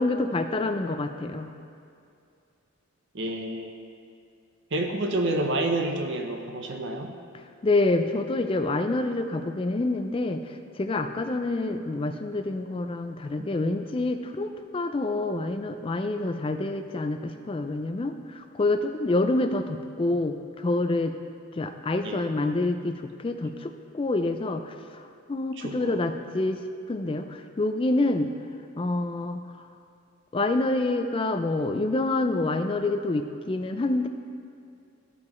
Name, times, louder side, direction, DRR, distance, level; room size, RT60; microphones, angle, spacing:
voice 1, 0.0-1.5 7.6-21.2 21.5-25.0 25.3-28.3 28.8-29.4 30.3-34.1, left 2 dB, 25° left, 7 dB, 0.3 m, -27 dB
voice 2, 3.1-3.7 4.7-7.1 13.4-13.5 22.0-22.3 25.6-26.0, right 1 dB, 55° right, 3 dB, 0.7 m, -29 dB
13.5 x 5.3 x 3.1 m, 2.5 s
head